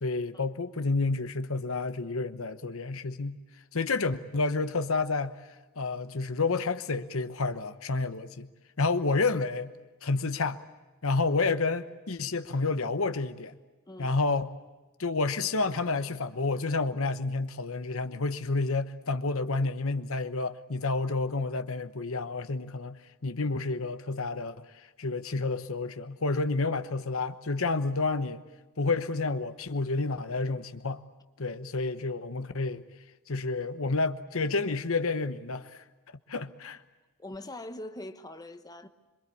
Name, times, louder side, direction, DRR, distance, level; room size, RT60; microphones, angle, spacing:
voice 1, 0.0-3.4 3.7-5.3 5.8-8.5 8.8-9.7 10.0-10.6 11.0-13.5 14.0-14.5 15.0-24.6 25.0-28.4 28.8-31.0 31.4-32.8 33.3-35.8 36.3-36.8, left 3 dB, 65° left, 1.1 m, -30 dB
voice 2, 37.2-38.9, left 1 dB, 15° left, 1.2 m, -42 dB
26.5 x 24.0 x 8.5 m
head